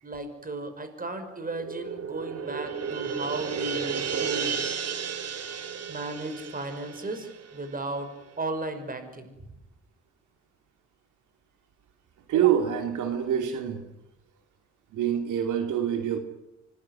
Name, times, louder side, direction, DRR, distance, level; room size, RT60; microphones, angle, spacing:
voice 1, 0.0-4.6 5.9-8.1 8.4-9.3, right 2 dB, 30° right, 9 dB, 6.1 m, -35 dB
sound 1, 1.5-8.0, right 7 dB, 55° right, 2.6 m, -33 dB
voice 2, 12.3-13.8 14.9-16.2, right 9 dB, 80° right, 6 dB, 2.7 m, -26 dB
25.5 x 21.0 x 9.8 m, 0.88 s
cardioid pair, 90°, 30 cm